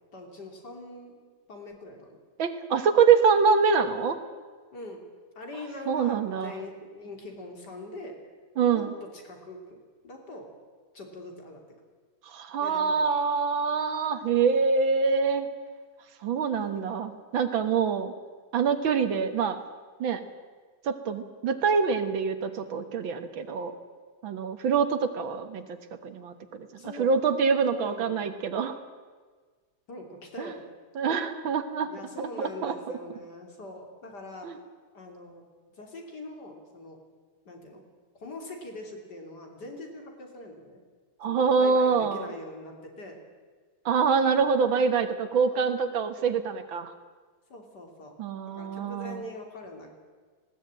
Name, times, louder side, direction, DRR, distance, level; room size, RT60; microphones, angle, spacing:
voice 1, 0.1-1.1 1.5-2.1 4.7-5.0 5.4-8.2 8.7-8.9 9.1-9.8 10.0-10.5 10.9-11.6 12.6-13.1 16.6-17.0 26.8-27.1 27.7-28.2 29.9-30.7 31.8-34.5 34.9-35.4 35.8-37.0 37.5-37.8 38.2-40.8 41.3-43.2 45.5-45.6 47.5-48.2 48.5-49.9, left 1 dB, 55° left, 3 dB, 3.6 m, -42 dB
voice 2, 2.4-4.2 5.9-6.5 8.6-8.9 12.3-15.5 16.2-18.1 18.5-19.6 20.0-20.2 20.8-23.8 24.2-25.6 26.0-28.8 30.4-30.5 31.0-31.9 32.2-32.7 34.4-34.6 41.2-42.3 43.9-46.9 48.2-49.2, right 5 dB, 75° right, 9 dB, 2.0 m, -25 dB
19.5 x 17.5 x 8.9 m, 1.5 s
omnidirectional pair, 2.2 m